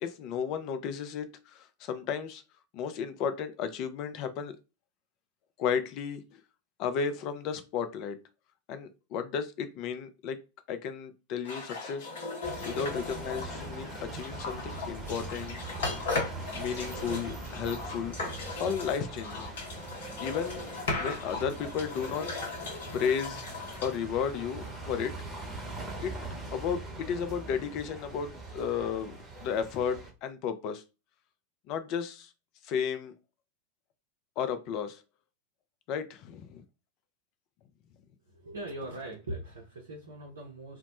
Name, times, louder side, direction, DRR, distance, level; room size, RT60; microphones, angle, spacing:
voice 1, 0.0-2.4 2.7-4.5 5.6-6.4 6.8-8.2 8.7-10.4 10.7-12.1 12.6-15.6 16.5-18.1 18.6-19.5 20.2-20.6 21.0-22.3 22.9-23.4 23.8-25.1 26.0-26.1 26.5-30.8 31.7-32.3 32.6-33.1 34.4-35.0 35.9-36.6, left 7 dB, 40° left, 0.4 m, -33 dB
sound 1, 11.4-25.0, left 3 dB, 60° left, 0.7 m, -38 dB
sound 2, 12.4-30.1, right 2 dB, 10° right, 0.9 m, -42 dB
voice 2, 38.3-40.8, right 1 dB, 65° right, 0.5 m, -41 dB
2.1 x 2.0 x 2.9 m
figure-of-eight pair, 90°, 0 cm